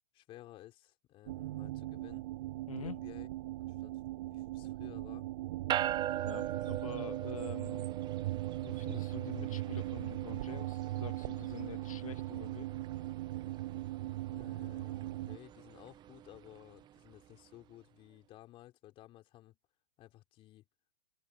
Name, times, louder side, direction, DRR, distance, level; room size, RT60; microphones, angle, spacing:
voice 1, 0.1-2.3 2.8-3.3 3.6-3.9 4.3-5.2 14.3-19.6 20.0-20.7, left 15 dB, 30° left, 3.8 m, -55 dB
sound 1, 1.3-15.4, right 16 dB, 55° right, 0.4 m, -39 dB
voice 2, 2.7-3.0 6.2-7.9 8.6-12.7, left 8 dB, 80° left, 2.1 m, -46 dB
sound 2, 5.7-17.3, right 12 dB, 25° right, 1.1 m, -42 dB
open air
hypercardioid pair, 120°, 18 cm